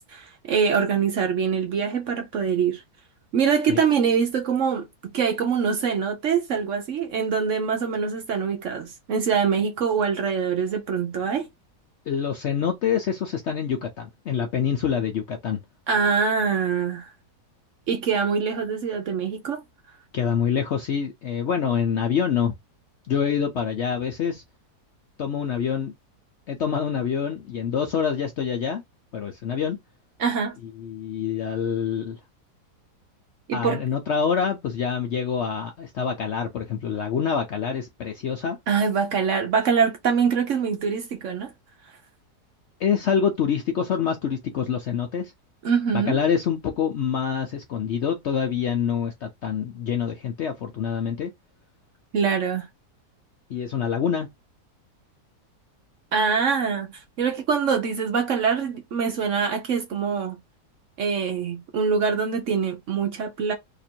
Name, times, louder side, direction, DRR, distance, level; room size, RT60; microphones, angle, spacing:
voice 1, 0.0-2.8 3.3-11.5 15.9-17.1 17.9-19.6 30.2-30.6 33.5-33.8 38.7-41.5 45.6-46.2 52.1-52.7 56.1-60.4 61.0-63.5, right 6 dB, 60° right, 0.9 m, -24 dB
voice 2, 12.1-15.6 20.1-22.5 23.1-24.4 25.2-25.9 26.5-28.8 29.1-29.8 30.6-32.2 33.5-38.6 42.8-45.3 45.9-51.3 53.5-54.3, left 7 dB, 65° left, 0.7 m, -26 dB
2.9 x 2.5 x 4.3 m
omnidirectional pair, 1.7 m